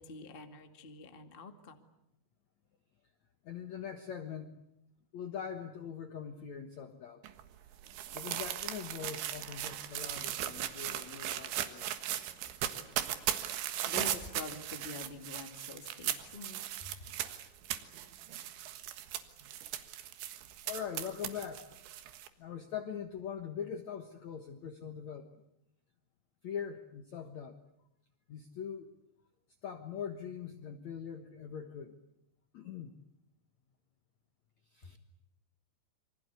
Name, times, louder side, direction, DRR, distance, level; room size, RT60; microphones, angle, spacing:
voice 1, 0.0-1.8 13.8-16.9, left 3 dB, 40° left, 6 dB, 0.7 m, -46 dB
voice 2, 3.4-4.6 5.1-7.2 8.1-11.9 20.6-21.7 22.4-25.3 26.4-27.6 28.3-28.9 29.6-32.0 32.5-32.9 34.7-35.0, left 7 dB, 70° left, 7 dB, 1.7 m, -42 dB
sound 1, 7.2-22.3, right 12 dB, 80° right, 3.9 m, -38 dB
28.0 x 25.0 x 8.3 m, 0.81 s
omnidirectional pair, 5.3 m